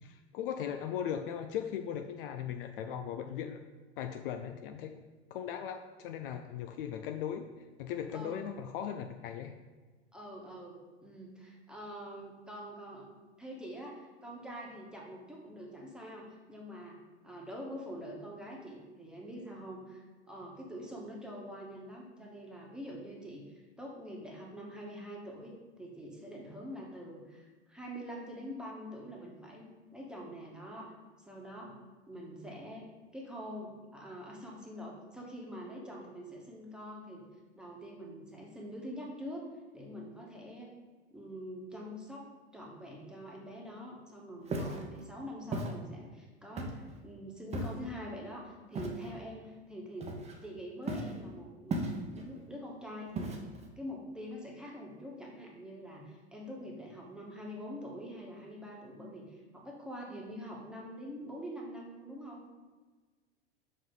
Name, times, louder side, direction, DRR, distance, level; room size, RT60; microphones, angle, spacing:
voice 1, 0.0-3.6 4.0-4.9 5.3-7.4 7.8-9.5, left 9 dB, 55° left, 6 dB, 0.5 m, -38 dB
voice 2, 10.1-13.1 13.4-17.0 17.2-30.9 31.2-31.7 32.1-32.9 33.1-37.2 37.6-39.5 39.7-40.7 41.1-50.2 50.4-53.3 53.8-62.4, equal, ahead, -2 dB, 1.5 m, -45 dB
Walk footsteps, 44.5-44.8 45.5-45.7 46.6-46.9 47.5-47.9 48.7-49.1 50.0-50.5 50.9-51.2 51.7-52.2 53.2-53.6, right 2 dB, 20° right, 0.9 m, -36 dB
5.7 x 5.1 x 3.9 m, 1.3 s
hypercardioid pair, 90°, 34 cm